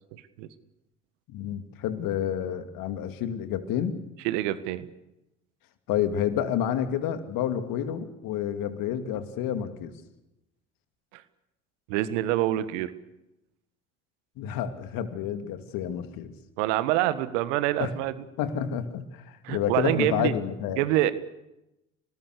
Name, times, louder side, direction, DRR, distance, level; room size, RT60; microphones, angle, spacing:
voice 1, 0.1-0.5 4.2-4.9 11.9-12.9 16.6-18.1 19.4-20.3 20.8-21.1, right 14 dB, 70° right, 13 dB, 1.6 m, -26 dB
voice 2, 1.3-4.0 5.9-9.9 14.4-16.3 17.8-17.9 18.4-20.8, left 9 dB, 65° left, 8 dB, 2.6 m, -29 dB
28.5 x 19.0 x 6.8 m, 0.92 s
hypercardioid pair, 60°, 37 cm